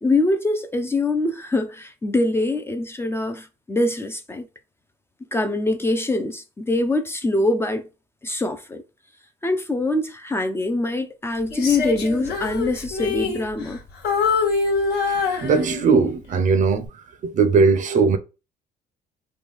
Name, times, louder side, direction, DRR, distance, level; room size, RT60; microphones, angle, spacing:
voice 1, 0.0-4.5 5.3-7.9 8.2-8.8 9.4-13.8, left 2 dB, 15° left, 0.4 m, -23 dB
Female singing, 11.5-13.8 14.0-16.1 16.6-16.9, left 4 dB, 70° left, 1.3 m, -24 dB
voice 2, 15.3-16.9 17.2-18.2, right 4 dB, 50° right, 0.6 m, -18 dB
3.1 x 2.3 x 3.5 m
cardioid pair, 110°, 17 cm